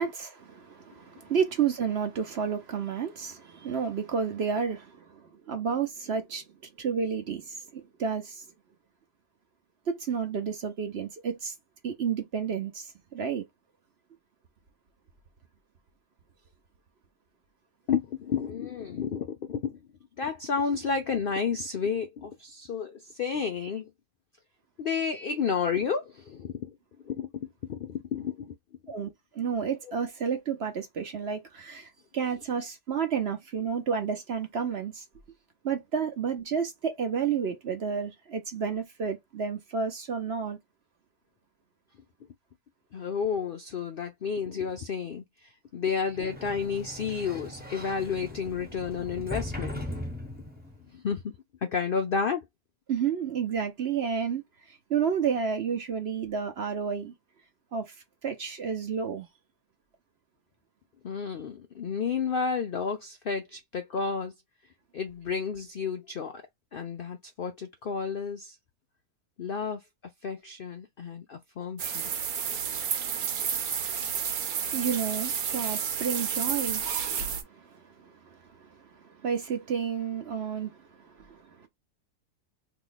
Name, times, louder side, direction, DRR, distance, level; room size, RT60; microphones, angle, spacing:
voice 1, 0.0-6.4 6.8-8.4 9.9-11.5 11.8-13.5 23.6-23.7 25.1-25.4 28.9-35.0 35.6-40.6 52.9-54.4 54.7-57.1 57.7-57.9 58.2-59.3 74.7-77.0 77.4-78.1 78.6-81.7, right 6 dB, 50° right, 1.0 m, -31 dB
voice 2, 17.9-19.8 20.2-23.9 24.8-26.8 27.0-28.5 28.8-28.9 42.9-49.8 50.9-51.3 51.6-52.4 61.0-64.3 64.9-66.4 66.7-68.6 69.4-69.8 70.2-72.1, left 6 dB, 70° left, 0.5 m, -31 dB
Sliding door, 46.1-50.8, left 1 dB, 5° right, 0.9 m, -39 dB
sound 1, 71.8-77.4, right 7 dB, 70° right, 1.3 m, -30 dB
3.0 x 3.0 x 4.0 m
omnidirectional pair, 1.6 m